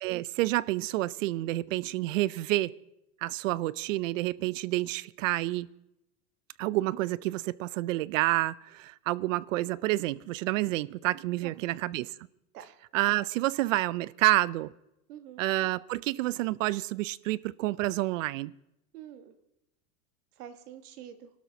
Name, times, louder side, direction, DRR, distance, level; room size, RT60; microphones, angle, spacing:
voice 1, 0.0-2.7 3.2-5.7 6.6-12.1 12.9-14.7 15.4-18.5, right 17 dB, 60° right, 0.5 m, -29 dB
voice 2, 11.4-11.8 12.5-12.6 15.1-15.4 18.9-19.4 20.4-21.3, right 10 dB, 85° right, 1.4 m, -46 dB
26.0 x 12.5 x 2.8 m
supercardioid pair, 160°, 44 cm